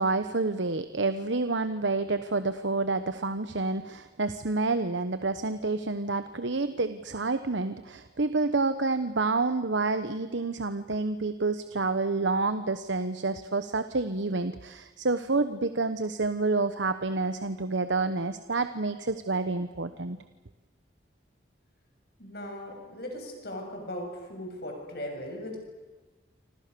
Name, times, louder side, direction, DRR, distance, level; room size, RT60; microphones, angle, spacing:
voice 1, 0.0-20.2, right 3 dB, 80° right, 10 dB, 1.1 m, -28 dB
voice 2, 22.2-25.6, left 1 dB, 55° left, 2 dB, 7.5 m, -38 dB
28.5 x 26.0 x 6.9 m, 1.3 s
head